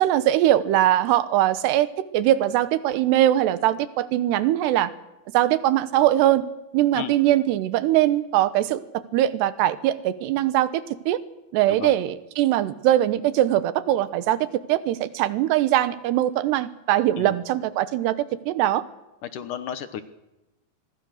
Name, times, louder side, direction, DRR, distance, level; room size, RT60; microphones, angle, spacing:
voice 1, 0.0-1.9 2.1-4.9 5.3-6.4 6.7-8.8 9.1-11.2 11.5-18.2 18.5-18.8, right 13 dB, 80° right, 14 dB, 3.2 m, -21 dB
voice 2, 19.2-20.0, left 9 dB, 70° left, 11 dB, 2.1 m, -33 dB
26.0 x 22.0 x 6.5 m, 0.94 s
omnidirectional pair, 4.9 m